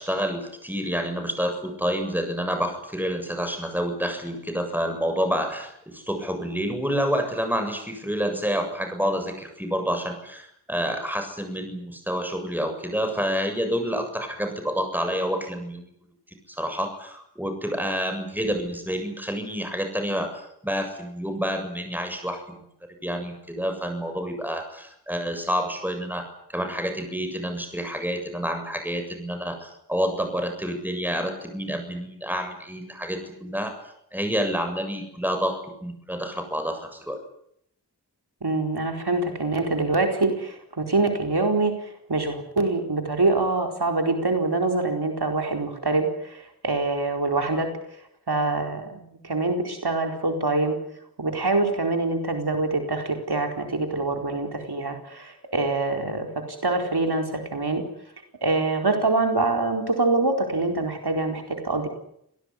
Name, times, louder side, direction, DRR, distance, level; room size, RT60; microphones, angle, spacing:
voice 1, 0.0-15.9 16.5-22.4 23.0-33.7 34.1-37.2, equal, 5° right, 6 dB, 7.4 m, -28 dB
voice 2, 38.4-47.7 48.3-50.7 51.2-57.8 58.4-61.9, right 3 dB, 75° right, 4 dB, 4.5 m, -25 dB
27.0 x 18.0 x 9.9 m, 0.73 s
wide cardioid pair, 60°, 39 cm